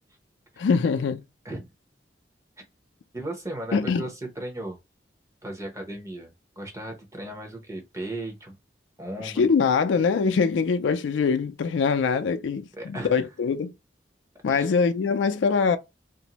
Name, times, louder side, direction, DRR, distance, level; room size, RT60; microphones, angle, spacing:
voice 1, 0.6-1.2 3.7-4.0 9.2-13.7 14.4-15.8, left 5 dB, 85° left, 0.4 m, -23 dB
voice 2, 3.1-4.8 5.4-8.5 9.0-9.5 12.8-13.3 14.5-14.7, right 1 dB, 15° right, 0.7 m, -36 dB
2.6 x 2.0 x 2.8 m
head